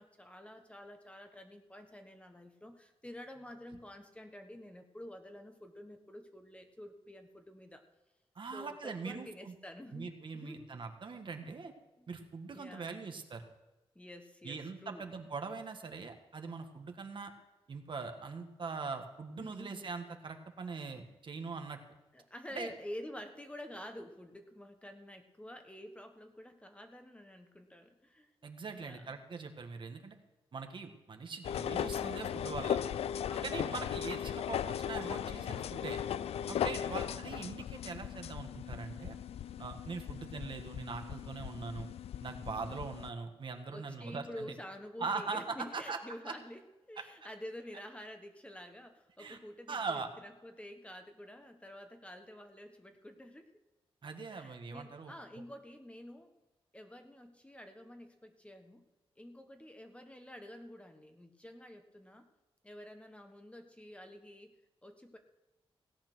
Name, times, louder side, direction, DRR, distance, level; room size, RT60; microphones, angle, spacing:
voice 1, 0.0-7.8 8.5-10.7 11.4-11.5 12.0-12.1 12.5-13.0 13.9-15.3 19.4-19.9 22.1-28.3 28.8-29.1 33.3-33.6 36.8-37.3 42.5-42.8 43.7-53.5 54.3-56.3 56.7-58.9 59.2-62.3 62.6-65.2, left 1 dB, 10° left, 5 dB, 1.3 m, -49 dB
voice 2, 8.3-9.5 9.9-11.7 12.1-13.4 14.4-17.3 17.7-21.8 22.5-22.7 28.4-30.2 30.5-32.8 33.4-36.0 36.5-39.2 39.6-41.9 42.2-44.5 45.0-46.0 46.2-46.3 49.2-49.4 49.7-50.1 54.0-55.1, right 4 dB, 55° right, 5 dB, 1.5 m, -42 dB
sound 1, 31.4-43.1, left 9 dB, 85° left, 0.4 m, -37 dB
17.0 x 8.7 x 6.1 m, 1.1 s
cardioid pair, 80°, 10 cm